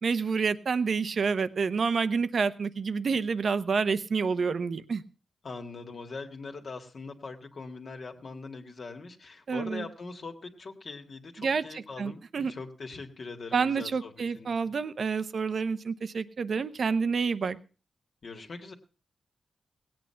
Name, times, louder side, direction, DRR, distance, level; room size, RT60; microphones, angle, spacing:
voice 1, 0.0-5.0 9.5-9.9 11.4-12.5 13.5-17.6, right 5 dB, 55° right, 13 dB, 0.9 m, -28 dB
voice 2, 5.4-14.7 18.2-18.7, left 4 dB, 50° left, 4 dB, 1.9 m, -42 dB
18.0 x 8.8 x 5.7 m, 0.36 s
wide cardioid pair, 120°, 0 cm